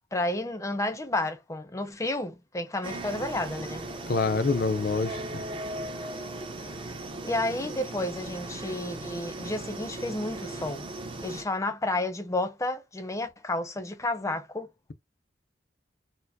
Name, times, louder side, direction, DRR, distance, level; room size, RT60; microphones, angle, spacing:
voice 1, 0.1-3.8 7.2-10.9 11.2-14.7, left 2 dB, 15° left, 0.6 m, -31 dB
sound 1, 2.8-11.4, right 2 dB, 30° right, 0.6 m, -37 dB
voice 2, 4.1-5.4, left 3 dB, 55° left, 0.5 m, -26 dB
4.2 x 2.0 x 2.7 m
head